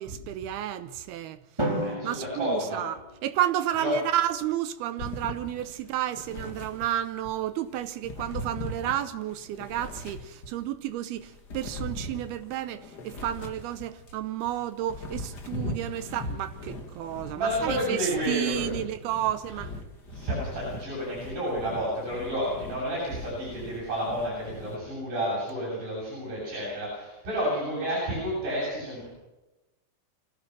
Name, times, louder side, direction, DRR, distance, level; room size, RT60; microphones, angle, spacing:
voice 1, 0.0-1.4 2.0-19.7, right 12 dB, 80° right, 2.3 m, -31 dB
Drum, 1.6-3.7, right 1 dB, 5° right, 3.4 m, -33 dB
voice 2, 1.8-2.8 3.7-4.0 17.3-18.7 20.1-29.1, equal, 45° right, 9.1 m, -30 dB
sound 1, 5.0-7.4 7.8-10.7 11.2-14.2 14.7-24.8, left 1 dB, 90° left, 0.9 m, -40 dB
25.5 x 17.0 x 6.0 m
omnidirectional pair, 5.2 m